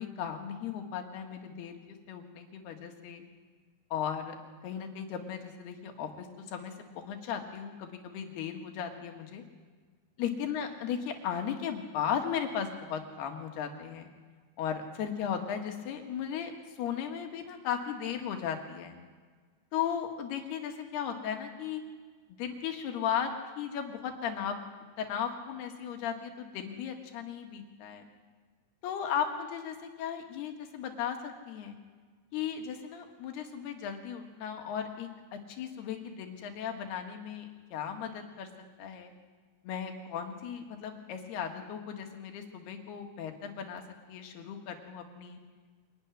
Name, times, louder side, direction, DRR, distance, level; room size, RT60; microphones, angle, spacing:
voice 1, 0.0-1.8 2.1-3.2 3.9-4.4 4.6-9.4 10.2-14.1 14.6-19.0 19.7-21.8 22.3-23.3 23.6-24.6 25.0-28.1 28.8-31.8 32.3-38.5 38.8-39.1 39.6-43.8 44.1-45.4, left 8 dB, 90° left, 4 dB, 3.7 m, -36 dB
24.5 x 12.0 x 9.9 m, 1.5 s
omnidirectional pair, 4.5 m